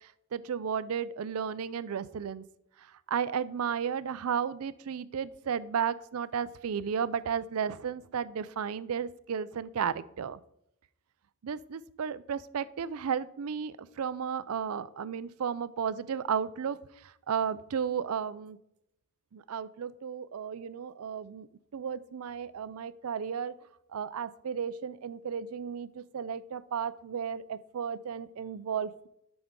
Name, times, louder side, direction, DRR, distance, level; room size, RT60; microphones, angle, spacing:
voice 1, 0.3-2.4 3.1-10.4 11.4-16.8 17.3-18.6 19.3-21.5 21.7-23.5 23.9-29.1, right 7 dB, 85° right, 17 dB, 0.4 m, -33 dB
11.5 x 6.1 x 3.7 m, 0.79 s
head